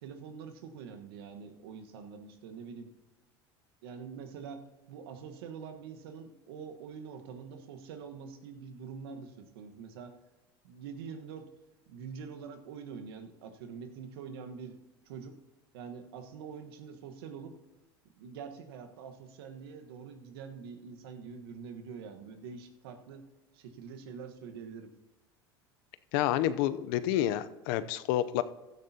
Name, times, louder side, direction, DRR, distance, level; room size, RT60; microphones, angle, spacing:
voice 1, 0.0-2.9 3.8-4.6 4.9-10.1 10.6-11.5 11.9-14.8 15.0-15.3 15.7-17.5 18.2-23.2 23.5-24.9, right 6 dB, 80° right, 6 dB, 1.3 m, -45 dB
voice 2, 26.1-28.4, left 12 dB, 70° left, 14 dB, 0.6 m, -29 dB
15.0 x 13.5 x 2.8 m, 1.1 s
hypercardioid pair, 85°, 13 cm